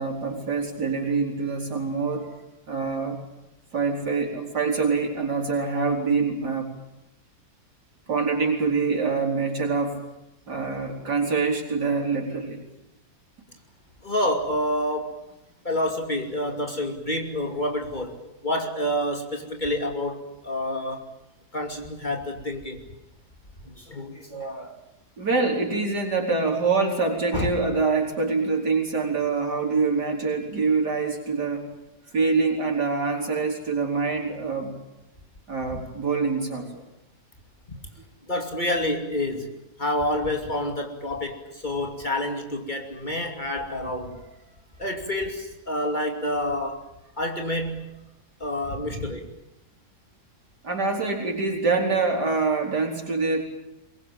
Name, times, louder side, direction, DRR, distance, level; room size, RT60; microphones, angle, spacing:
voice 1, 0.0-2.3 2.7-3.2 3.7-6.7 8.1-10.0 10.5-12.6 25.2-31.7 32.1-34.8 35.5-36.8 50.6-53.4, right 4 dB, 85° right, 1 dB, 5.2 m, -25 dB
voice 2, 14.0-15.2 15.6-21.1 21.5-22.8 23.6-24.8 27.3-27.5 38.3-39.5 39.8-44.2 44.8-46.8 47.2-47.9 48.4-49.3, left 1 dB, 30° left, 2 dB, 2.8 m, -28 dB
23.5 x 22.0 x 9.0 m, 0.92 s
omnidirectional pair, 1.7 m